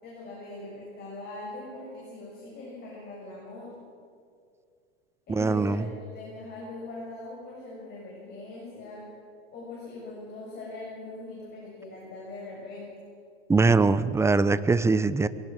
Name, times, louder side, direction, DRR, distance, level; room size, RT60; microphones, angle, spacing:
voice 1, 0.0-3.8 5.3-9.1 9.5-12.9, left 2 dB, 30° left, -4 dB, 7.2 m, -41 dB
voice 2, 5.3-5.8 13.5-15.3, right 3 dB, 10° right, 14 dB, 0.8 m, -22 dB
23.0 x 16.5 x 7.7 m, 2.2 s
hypercardioid pair, 110°, 31 cm